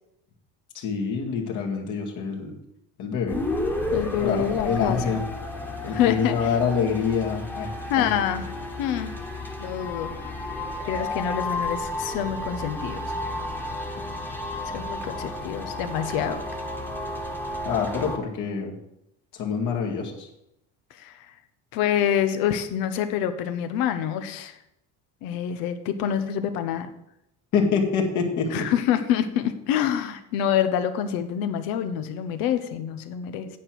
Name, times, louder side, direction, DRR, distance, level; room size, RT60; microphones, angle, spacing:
voice 1, 0.7-2.5 3.0-3.4 4.2-5.2 5.8-7.7 8.0-8.1 17.6-18.8 19.3-20.3 27.5-28.7, left 6 dB, 60° left, 0 dB, 2.0 m, -26 dB
sound 1, 3.3-18.2, left 1 dB, 5° left, 1.3 m, -32 dB
voice 2, 3.9-5.2 5.8-6.4 7.9-8.5 8.8-9.1 9.6-10.2 10.8-13.2 14.7-16.4 20.9-21.3 21.7-24.6 25.2-26.9 28.5-33.5, left 9 dB, 85° left, 10 dB, 1.0 m, -26 dB
9.7 x 4.6 x 7.7 m, 0.82 s
cardioid pair, 135°, 34 cm